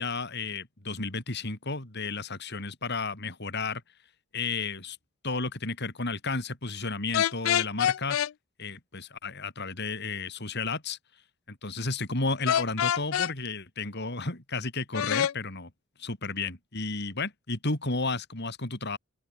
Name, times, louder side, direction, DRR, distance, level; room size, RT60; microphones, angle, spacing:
voice 1, 0.0-3.8 4.3-5.0 5.2-8.2 8.6-11.0 11.5-15.7 16.0-19.0, left 3 dB, 55° left, 4.2 m, -32 dB
sound 1, 7.1-8.3 12.5-13.3 14.9-15.3, left 10 dB, 70° left, 0.4 m, -25 dB
open air
head